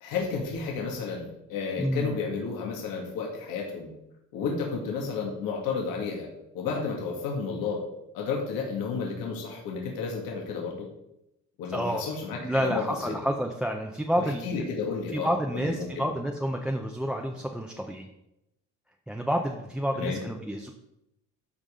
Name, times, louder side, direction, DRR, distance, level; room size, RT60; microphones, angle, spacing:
voice 1, 0.0-3.9 4.3-6.3 6.5-7.8 8.1-10.9 11.6-13.2 14.2-16.1 19.9-20.2, left 5 dB, 90° left, -1 dB, 2.0 m, -32 dB
voice 2, 1.8-2.1 11.7-12.1 12.4-14.7 15.1-18.1 19.1-20.7, equal, 5° right, 2 dB, 0.5 m, -29 dB
13.0 x 5.3 x 3.8 m, 0.86 s
cardioid pair, 150°, 34 cm